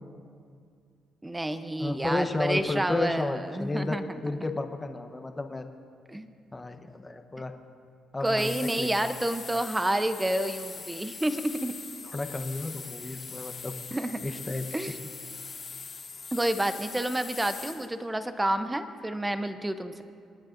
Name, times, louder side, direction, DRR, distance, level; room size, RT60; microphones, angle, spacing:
voice 1, 1.2-4.0 6.1-6.3 8.2-11.7 13.9-14.2 14.7-15.0 16.3-20.0, right 1 dB, 10° right, 10 dB, 0.7 m, -29 dB
voice 2, 1.8-5.7 6.5-7.5 8.1-9.1 12.1-13.7 14.2-14.7, left 2 dB, 20° left, 6 dB, 0.9 m, -32 dB
sound 1, 8.2-17.9, left 5 dB, 45° left, 1.7 m, -41 dB
27.5 x 9.6 x 2.6 m, 2.3 s
cardioid pair, 90°, 0 cm